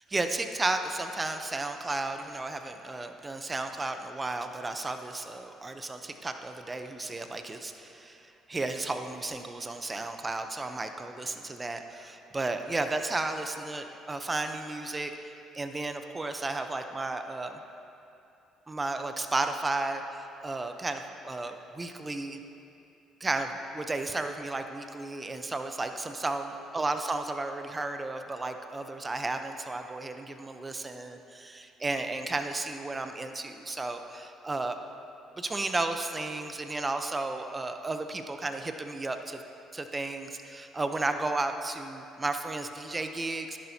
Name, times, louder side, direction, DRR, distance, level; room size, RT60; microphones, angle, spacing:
voice 1, 0.1-8.2 8.5-17.6 18.7-22.4 23.2-34.8 35.4-39.4 39.7-43.6, right 2 dB, 25° right, 7 dB, 0.8 m, -33 dB
12.0 x 11.0 x 2.9 m, 2.7 s
supercardioid pair, 65°, 0 cm